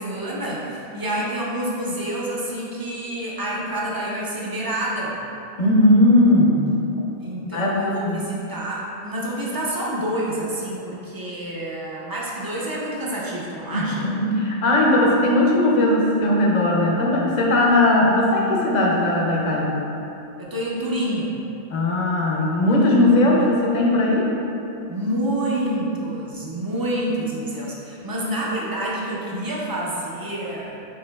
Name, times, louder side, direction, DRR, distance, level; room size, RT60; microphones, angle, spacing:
voice 1, 0.0-5.2 7.2-14.1 20.4-21.3 24.9-30.9, right 1 dB, 30° right, -5 dB, 0.4 m, -28 dB
voice 2, 5.6-6.6 7.5-8.2 13.7-19.8 21.7-24.3, left 1 dB, 50° left, -3 dB, 0.6 m, -18 dB
5.2 x 3.8 x 2.2 m, 2.8 s
omnidirectional pair, 1.1 m